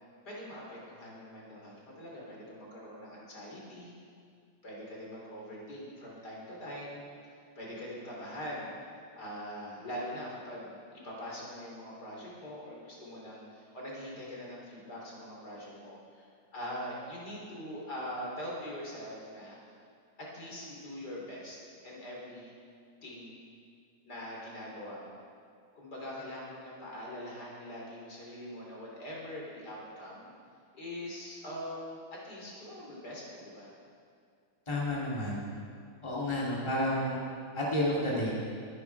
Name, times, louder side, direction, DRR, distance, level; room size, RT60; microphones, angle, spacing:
voice 1, 0.3-3.9 4.6-7.0 7.3-8.7 9.1-10.8 11.0-19.7 20.2-21.6 21.8-22.5 23.0-23.4 24.1-25.2 25.8-30.3 30.7-33.7, equal, 55° left, -4 dB, 4.0 m, -43 dB
voice 2, 34.7-35.4 36.0-37.2 37.5-38.3, left 1 dB, 15° left, -5 dB, 2.6 m, -30 dB
23.0 x 10.0 x 4.7 m, 2.2 s
omnidirectional pair, 2.2 m